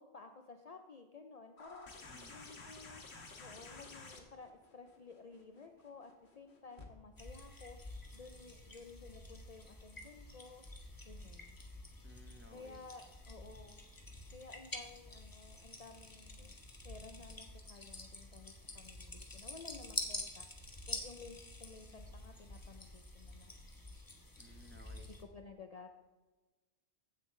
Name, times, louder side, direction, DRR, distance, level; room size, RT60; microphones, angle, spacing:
voice 1, 0.0-1.9 2.3-3.0 3.4-7.8 8.1-10.6 11.1-11.6 12.5-13.8 14.3-16.6 16.8-23.6 25.2-25.9, left 4 dB, 45° left, 5 dB, 0.5 m, -54 dB
sound 1, 1.6-6.9 8.2-8.3, left 3 dB, 70° left, 1.5 m, -53 dB
voice 2, 2.1-2.4 12.0-12.8 24.4-25.1, equal, 10° right, 3 dB, 0.7 m, -58 dB
sound 2, 7.2-25.2, left 2 dB, 20° left, 0.9 m, -48 dB
15.5 x 6.8 x 3.2 m, 1.2 s
omnidirectional pair, 1.1 m